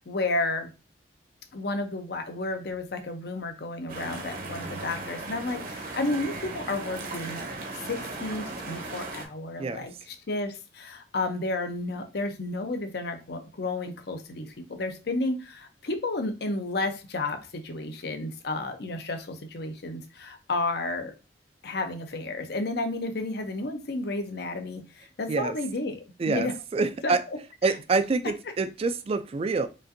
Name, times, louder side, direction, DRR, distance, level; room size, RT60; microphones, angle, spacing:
voice 1, 0.1-0.7 1.5-7.4 7.8-21.1 21.6-26.5 27.0-27.1 27.6-27.7, left 2 dB, 65° left, 0.7 m, -32 dB
sound 1, 3.9-9.3, right 3 dB, 50° right, 0.8 m, -37 dB
voice 2, 26.2-27.2 27.6-29.7, right 4 dB, 35° right, 0.3 m, -26 dB
5.1 x 2.5 x 2.6 m
head